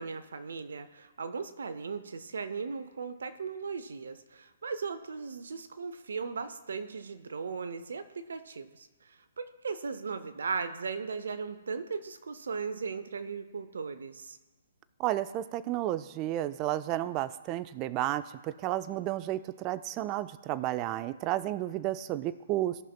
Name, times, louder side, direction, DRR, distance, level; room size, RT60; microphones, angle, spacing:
voice 1, 0.0-8.9 9.4-14.4, right 5 dB, 70° right, 11 dB, 0.6 m, -37 dB
voice 2, 15.0-22.8, right 14 dB, 30° right, 14 dB, 0.3 m, -32 dB
14.0 x 5.8 x 2.2 m, 1.1 s
figure-of-eight pair, 130°, 0 cm